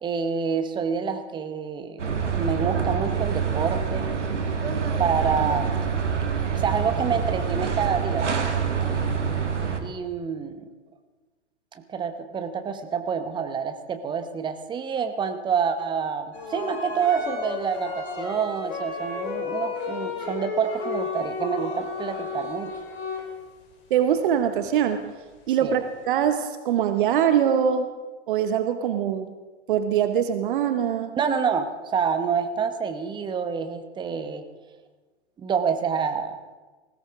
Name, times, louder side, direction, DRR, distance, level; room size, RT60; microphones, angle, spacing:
voice 1, 0.0-2.0 2.3-4.1 5.0-6.0 6.5-8.5 9.8-10.7 11.7-22.7 25.6-25.8 31.2-34.4 35.4-36.4, right 6 dB, 15° right, 8 dB, 1.0 m, -27 dB
sound 1, 2.0-9.8, right 6 dB, 75° right, 1.9 m, -26 dB
sound 2, 16.3-23.7 24.3-24.4 24.9-25.1 25.6-25.7 25.9-26.0, left 4 dB, 30° left, 3.2 m, -33 dB
voice 2, 23.9-25.1 25.5-27.9 28.3-29.3 29.7-31.2, right 9 dB, 45° right, 9 dB, 1.0 m, -23 dB
19.5 x 16.0 x 3.7 m, 1.3 s
figure-of-eight pair, 110°, 36 cm